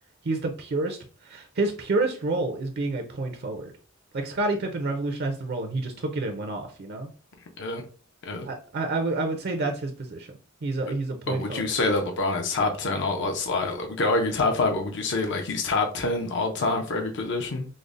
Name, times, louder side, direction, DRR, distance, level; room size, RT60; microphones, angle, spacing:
voice 1, 0.2-1.0 1.2-3.7 4.1-7.1 8.4-10.3 10.6-11.7, right 2 dB, 50° right, 0.5 m, -29 dB
voice 2, 11.3-17.7, left 3 dB, 60° left, 0.5 m, -26 dB
5.1 x 2.0 x 2.5 m
head